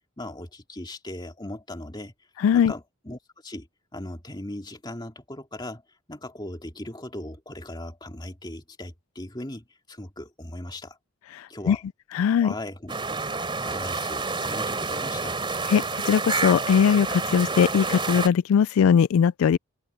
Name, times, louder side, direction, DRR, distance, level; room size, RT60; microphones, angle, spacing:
voice 1, 0.2-2.1 2.5-3.7 3.9-5.8 6.1-11.0 11.5-11.8 12.2-12.9 13.6-15.4, left 1 dB, 20° left, 2.5 m, -38 dB
voice 2, 2.4-2.7 11.3-11.8 12.1-12.5 15.7-19.6, left 7 dB, 80° left, 0.3 m, -20 dB
sound 1, 12.9-18.3, right 4 dB, 25° right, 3.1 m, -29 dB
open air
head